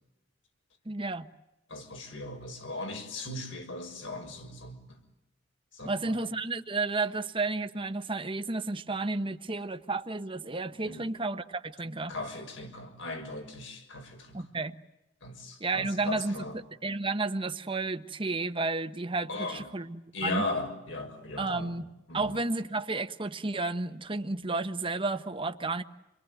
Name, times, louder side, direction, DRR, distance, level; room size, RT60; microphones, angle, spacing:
voice 1, 0.8-1.3 5.8-12.1 14.3-14.8 15.6-20.4 21.4-21.9 22.1-25.8, right 3 dB, 25° right, 1.1 m, -32 dB
voice 2, 1.7-5.0 5.7-6.2 10.8-11.1 12.1-14.4 15.2-16.6 19.3-19.7 20.1-21.7 22.1-22.4, left 2 dB, 70° left, 6.2 m, -38 dB
28.5 x 22.0 x 9.3 m
head